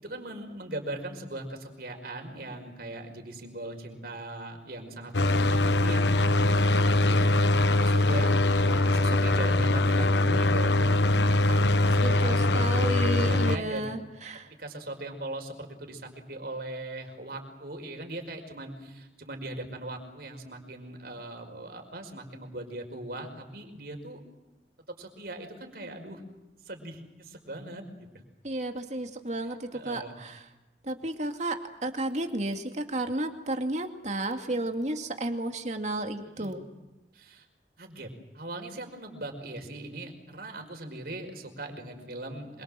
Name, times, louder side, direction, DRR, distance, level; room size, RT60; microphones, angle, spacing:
voice 1, 0.0-7.3 7.8-12.7 13.2-13.9 14.6-24.2 24.9-26.2 26.7-28.1 29.7-30.2 36.2-36.6 37.1-37.5 37.8-42.6, right 1 dB, 60° right, 4 dB, 5.3 m, -39 dB
sound 1, 5.1-13.6, left 2 dB, 80° left, 1.0 m, -23 dB
voice 2, 12.0-14.5 28.4-30.5 30.8-36.6, right 2 dB, 40° right, 5 dB, 2.4 m, -32 dB
26.5 x 24.0 x 7.7 m, 1.0 s
head